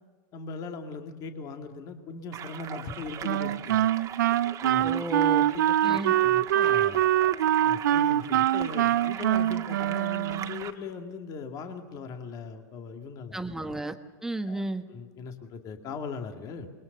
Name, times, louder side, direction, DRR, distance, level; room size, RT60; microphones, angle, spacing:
voice 1, 0.3-3.9 4.6-4.9 5.5-7.1 7.6-13.4 14.5-14.6 14.9-16.7, left 5 dB, 40° left, 5 dB, 2.4 m, -39 dB
sound 1, 2.3-10.7, right 10 dB, 35° right, 1.8 m, -40 dB
Wind instrument woodwind instrument, 3.2-10.7, right 12 dB, 85° right, 0.7 m, -24 dB
voice 2, 4.8-5.5 5.8-6.1 13.3-14.0 14.2-14.9, right 2 dB, 5° right, 7 dB, 1.4 m, -33 dB
28.0 x 22.0 x 6.7 m, 1.4 s
supercardioid pair, 130°, 10 cm